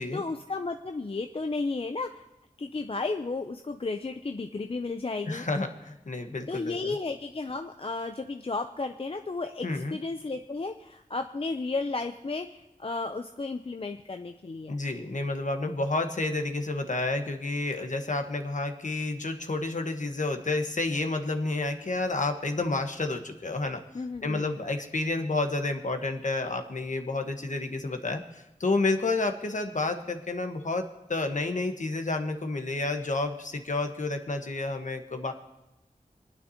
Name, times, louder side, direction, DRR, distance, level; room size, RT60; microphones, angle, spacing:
voice 1, 0.1-2.2 2.6-5.4 6.5-14.7 23.9-24.5, left 3 dB, 40° left, 6 dB, 0.5 m, -33 dB
voice 2, 5.3-6.9 9.6-10.0 14.7-23.8 24.2-35.3, left 2 dB, 55° left, 5 dB, 1.3 m, -30 dB
27.5 x 9.6 x 2.9 m, 0.99 s
wide cardioid pair, 70°, 15 cm